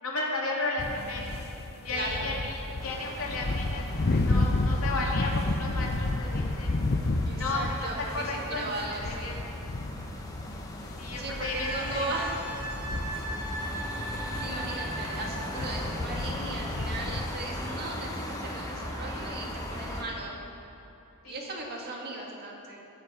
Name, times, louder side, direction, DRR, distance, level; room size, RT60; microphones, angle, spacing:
voice 1, 0.0-1.3 1.8-3.9 4.2-6.8 7.4-8.7 9.0-9.4 11.0-12.1 14.3-14.6 21.2-21.5, left 2 dB, 70° left, -2 dB, 2.4 m, -34 dB
sound 1, 0.8-17.2, left 2 dB, 45° left, 0.6 m, -32 dB
voice 2, 1.9-2.3 7.3-9.3 11.2-12.4 14.3-20.4 21.2-22.9, right 2 dB, 45° right, -1 dB, 2.1 m, -37 dB
sound 2, 2.8-20.0, left 1 dB, 15° left, 1.2 m, -38 dB
Wind instrument woodwind instrument, 11.4-15.7 18.3-18.5, right 1 dB, 85° right, 2.5 m, -38 dB
21.5 x 7.4 x 4.9 m, 2.9 s
head